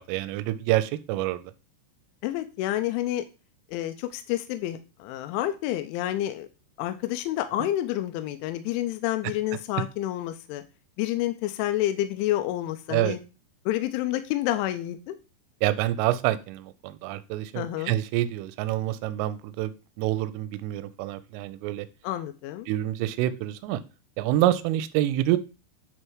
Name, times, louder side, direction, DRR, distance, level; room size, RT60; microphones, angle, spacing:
voice 1, 0.0-1.4 12.9-13.2 15.6-19.7 20.0-21.9 22.7-23.8 24.2-25.4, right 14 dB, 85° right, 13 dB, 3.2 m, -27 dB
voice 2, 2.2-3.2 3.7-6.5 6.8-10.6 11.0-13.2 13.7-15.2 17.6-17.9 22.0-22.7, left 14 dB, 85° left, 8 dB, 2.8 m, -29 dB
9.7 x 3.3 x 4.6 m, 0.31 s
omnidirectional pair, 5.9 m